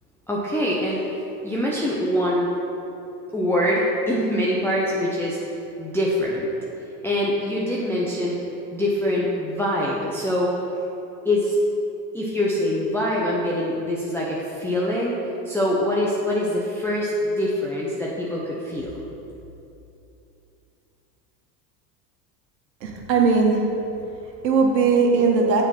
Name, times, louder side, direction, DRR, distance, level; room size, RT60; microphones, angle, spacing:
voice 1, 0.3-1.0 1.4-2.5 3.3-5.4 5.8-6.5 7.0-8.4 8.7-10.5 11.2-11.6 12.1-15.1 15.5-19.0, left 1 dB, 5° left, -6 dB, 0.7 m, -24 dB
voice 2, 22.8-23.7 24.1-25.6, right 4 dB, 90° right, 1 dB, 1.3 m, -19 dB
7.2 x 4.3 x 5.8 m, 2.9 s
hypercardioid pair, 95°, 49 cm